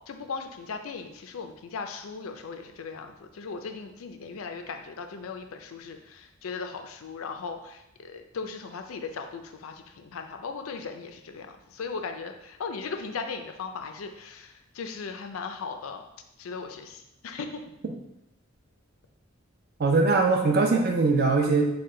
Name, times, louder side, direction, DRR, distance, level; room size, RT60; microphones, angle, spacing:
voice 1, 0.1-16.0 16.4-17.6, left 5 dB, 90° left, 6 dB, 0.4 m, -38 dB
voice 2, 19.8-21.6, right 3 dB, 50° right, 3 dB, 0.5 m, -21 dB
4.4 x 2.2 x 3.7 m, 0.84 s
head